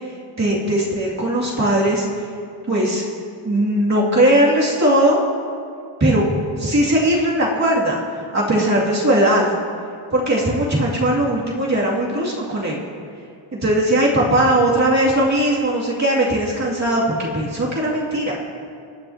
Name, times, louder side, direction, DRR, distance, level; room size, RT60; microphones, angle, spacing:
voice 1, 0.4-2.1 2.7-3.0 3.4-5.2 6.0-6.3 6.6-8.0 8.3-9.5 10.1-12.8 13.6-18.4, right 1 dB, 35° right, -6 dB, 2.5 m, -18 dB
26.5 x 9.7 x 2.9 m, 2.4 s
wide cardioid pair, 120°, 50 cm